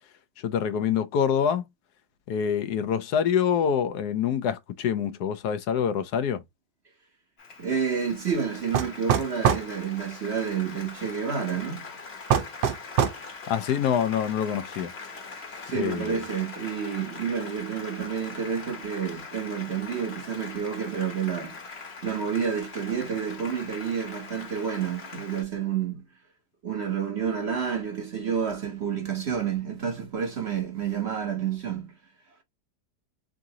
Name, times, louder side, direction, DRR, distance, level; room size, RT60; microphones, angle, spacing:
voice 1, 0.4-1.6 2.3-6.4 13.5-14.9 15.7-16.2, left 8 dB, 75° left, 1.2 m, -26 dB
Applause, 7.4-25.4, left 4 dB, 40° left, 1.3 m, -42 dB
voice 2, 7.6-11.8 15.6-21.6 22.0-26.0 26.6-31.9, right 7 dB, 50° right, 0.9 m, -29 dB
sound 1, 8.7-9.7 12.3-13.2, right 8 dB, 80° right, 1.3 m, -23 dB
3.8 x 3.7 x 2.7 m
omnidirectional pair, 1.8 m